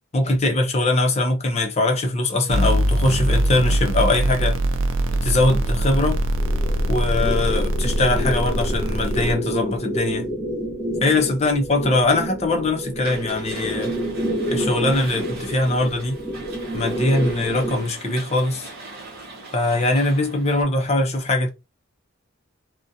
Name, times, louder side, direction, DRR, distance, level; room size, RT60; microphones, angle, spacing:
voice 1, 0.1-4.6 5.2-6.2 6.9-10.3 11.0-13.9 14.5-16.2 16.7-18.7 19.5-21.5, left 2 dB, 30° left, 0.5 m, -21 dB
sound 1, 2.5-9.3, right 1 dB, 65° right, 0.4 m, -22 dB
sound 2, 6.4-17.8, equal, 10° right, 0.9 m, -29 dB
sound 3, 13.0-20.6, right 3 dB, 45° right, 0.8 m, -40 dB
2.4 x 2.1 x 2.6 m
head